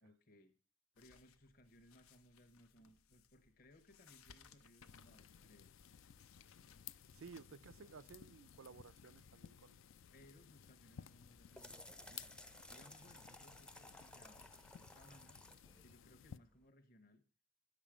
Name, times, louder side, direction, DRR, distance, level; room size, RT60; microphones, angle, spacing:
voice 1, 0.0-0.5 1.0-5.7 10.1-14.5 14.8-15.4 15.8-17.2, left 1 dB, 45° left, 1.1 m, -65 dB
sound 1, 1.0-7.4, left 6 dB, 90° left, 0.8 m, -66 dB
sound 2, 4.9-16.4, left 8 dB, 70° left, 0.4 m, -58 dB
voice 2, 7.1-9.8, right 5 dB, 75° right, 0.5 m, -56 dB
sound 3, 11.1-16.6, left 1 dB, 5° left, 0.5 m, -58 dB
11.0 x 7.3 x 4.9 m
head